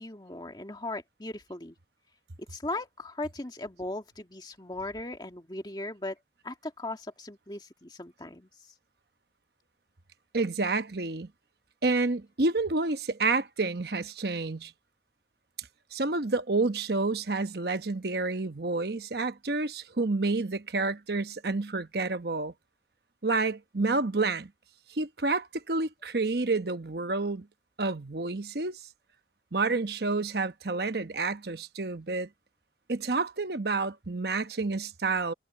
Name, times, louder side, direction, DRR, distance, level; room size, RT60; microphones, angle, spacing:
voice 1, 0.0-1.8 2.5-6.2 6.4-8.5, left 2 dB, 25° left, 2.2 m, -38 dB
voice 2, 10.3-11.3 11.8-14.7 15.9-22.5 23.2-24.5 24.9-27.5 27.8-28.8 29.5-32.3 32.9-35.3, right 3 dB, 60° right, 1.0 m, -29 dB
head